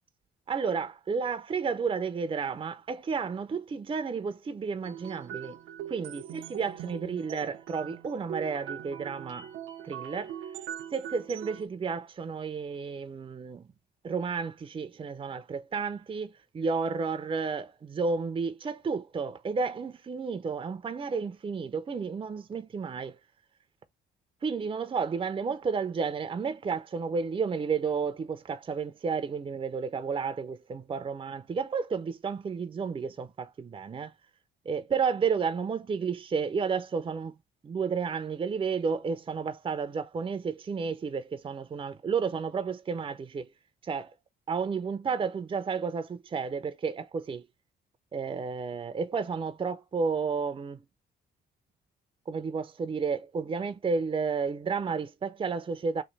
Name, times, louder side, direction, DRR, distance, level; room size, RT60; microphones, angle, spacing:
voice 1, 0.5-5.6 5.9-9.5 9.8-10.3 10.9-13.6 14.0-23.2 24.4-34.1 34.7-37.3 37.6-43.5 43.8-44.1 44.5-47.4 48.1-50.8 52.3-56.0, right 5 dB, 25° right, 0.4 m, -32 dB
sound 1, 4.8-11.7, right 10 dB, 85° right, 0.6 m, -41 dB
3.1 x 2.5 x 4.0 m
cardioid pair, 90°, 20 cm